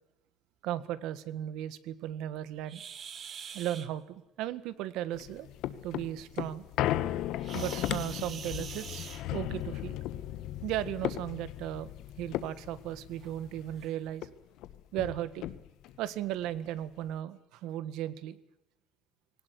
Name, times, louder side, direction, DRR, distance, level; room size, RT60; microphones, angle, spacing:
voice 1, 0.6-2.8 3.5-5.5 5.8-6.6 7.5-10.0 10.6-11.9 12.2-14.3 14.9-15.4 16.0-18.4, right 12 dB, 80° right, 15 dB, 1.7 m, -36 dB
sound 1, 2.6-3.9 7.4-9.6 10.9-11.1 11.6-11.7 12.3-12.4 13.2-13.3 13.8-14.0, right 7 dB, 35° right, 1.9 m, -44 dB
sound 2, 5.1-13.9 14.2-14.3 14.6-16.0 16.4-16.5, left 13 dB, 70° left, 1.4 m, -36 dB
21.0 x 18.5 x 9.5 m, 0.88 s
cardioid pair, 170°, 0 cm